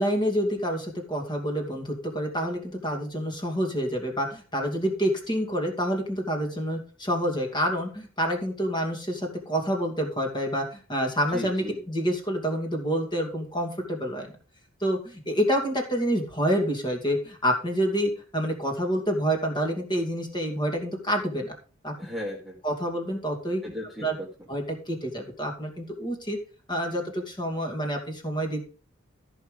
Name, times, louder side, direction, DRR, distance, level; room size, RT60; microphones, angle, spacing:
voice 1, 0.0-14.3 14.8-21.6 21.8-21.9 22.6-23.6 24.0-24.2 24.5-26.4 26.7-28.6, equal, 20° left, 2 dB, 2.6 m, -28 dB
voice 2, 11.3-11.8 22.0-22.6 23.6-24.5, equal, ahead, -5 dB, 2.2 m, -36 dB
14.0 x 5.9 x 5.1 m, 0.38 s
head